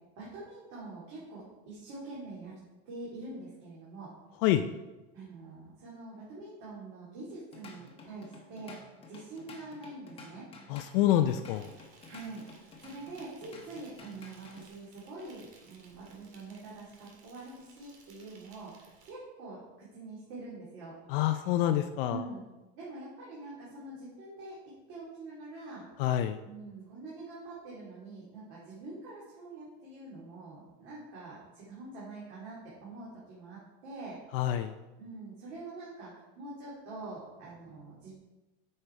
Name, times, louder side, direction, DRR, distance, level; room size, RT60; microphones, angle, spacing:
voice 1, 0.2-2.6 2.8-4.1 5.1-8.8 9.1-10.5 12.0-12.4 12.8-20.9 22.1-22.5 22.8-24.6 24.9-25.8 26.4-34.2 34.5-34.6 35.0-38.1, right 2 dB, 45° right, -7 dB, 2.8 m, -45 dB
Drum kit / Drum, 7.3-14.7, left 3 dB, 15° left, 1.0 m, -52 dB
voice 2, 10.7-11.7 21.1-22.2 26.0-26.4 34.3-34.7, left 12 dB, 60° left, 8 dB, 0.5 m, -27 dB
Insect, 11.5-19.1, right 4 dB, 85° right, 2.2 m, -60 dB
8.1 x 5.6 x 4.5 m, 1.1 s
supercardioid pair, 155°, 32 cm